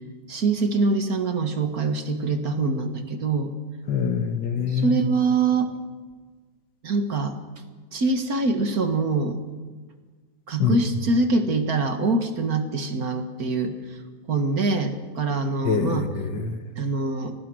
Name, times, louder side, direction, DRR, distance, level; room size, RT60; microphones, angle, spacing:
voice 1, 0.3-3.5 4.7-5.7 6.8-7.3 7.9-9.4 10.5-13.7 14.3-16.1 16.8-17.3, right 3 dB, 50° right, 7 dB, 2.1 m, -24 dB
voice 2, 3.9-5.0 10.6-10.8 15.6-16.6, left 6 dB, 70° left, 8 dB, 2.2 m, -25 dB
26.5 x 18.5 x 6.3 m, 1.4 s
omnidirectional pair, 2.0 m